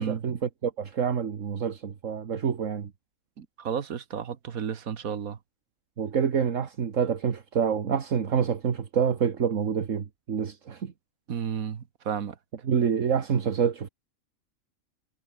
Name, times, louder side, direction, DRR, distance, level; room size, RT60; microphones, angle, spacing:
voice 1, 0.0-2.9 6.0-10.9 12.6-13.9, right 7 dB, 65° right, 1.7 m, -27 dB
voice 2, 3.4-5.4 11.3-12.4, right 7 dB, 85° right, 1.8 m, -32 dB
omnidirectional pair, 1.4 m